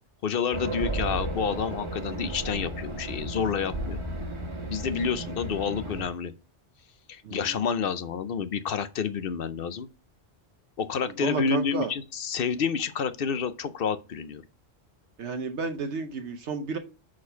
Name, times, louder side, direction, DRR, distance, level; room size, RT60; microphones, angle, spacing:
voice 1, 0.2-4.0 4.7-6.3 7.1-9.9 10.8-14.4, left 6 dB, 60° left, 0.8 m, -29 dB
Race car auto racing, 0.5-6.1, right 1 dB, 25° right, 1.4 m, -33 dB
voice 2, 7.2-7.6 11.0-11.9 15.2-16.8, right 5 dB, 75° right, 1.1 m, -32 dB
6.3 x 5.0 x 5.7 m
omnidirectional pair, 1.2 m